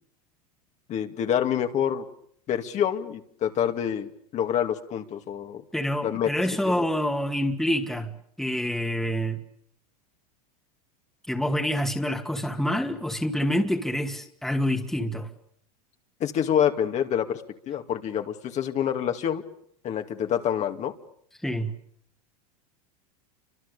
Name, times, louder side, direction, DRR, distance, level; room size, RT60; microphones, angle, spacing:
voice 1, 0.9-2.0 2.5-5.6 6.0-6.3 6.7-6.9 16.2-19.4 19.8-20.9, left 9 dB, 35° left, 2.5 m, -27 dB
voice 2, 5.7-9.4 11.3-15.3 21.4-21.7, equal, ahead, 2.3 m, -27 dB
29.5 x 25.5 x 7.0 m
supercardioid pair, 120°, 19 cm